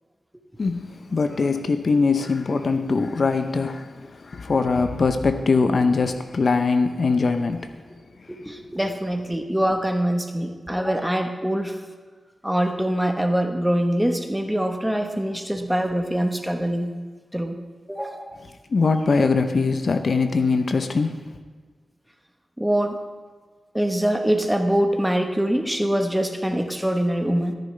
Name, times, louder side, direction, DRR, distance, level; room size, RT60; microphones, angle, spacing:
voice 1, 0.6-7.7 18.7-21.3, left 4 dB, 60° left, 0.6 m, -22 dB
voice 2, 8.3-11.8 12.4-16.9 17.3-17.6 17.9-18.3 22.6-23.0 23.7-27.5, right 1 dB, 5° right, 1.1 m, -24 dB
14.0 x 10.0 x 3.3 m
cardioid pair, 65°, 0 cm